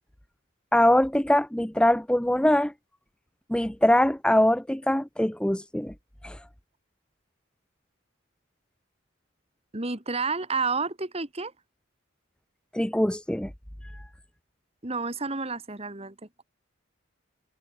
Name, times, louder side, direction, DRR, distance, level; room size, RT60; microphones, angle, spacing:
voice 1, 0.7-2.7 3.5-5.9 6.2-6.4 12.7-13.5, left 1 dB, 5° left, 0.6 m, -22 dB
voice 2, 9.7-11.5 14.8-16.4, right 4 dB, 30° right, 1.9 m, -30 dB
head